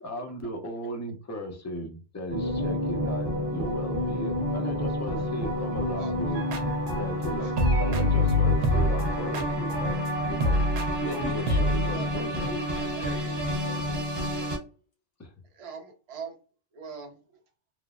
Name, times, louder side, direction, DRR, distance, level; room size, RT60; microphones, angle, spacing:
voice 1, 0.0-6.4 6.9-10.6 10.9-12.5 15.2-15.3, equal, 25° left, 2 dB, 0.3 m, -36 dB
sound 1, 2.3-14.6, equal, 25° right, 1.0 m, -30 dB
sound 2, 6.3-7.3 7.5-11.9, left 1 dB, 80° right, 0.9 m, -26 dB
voice 2, 11.0-14.6, left 3 dB, 65° left, -2 dB, 1.1 m, -42 dB
voice 3, 12.8-13.4 15.5-16.3 16.7-17.2, right 5 dB, 40° right, 2 dB, 0.5 m, -42 dB
3.1 x 2.0 x 2.4 m, 0.35 s
omnidirectional pair, 1.2 m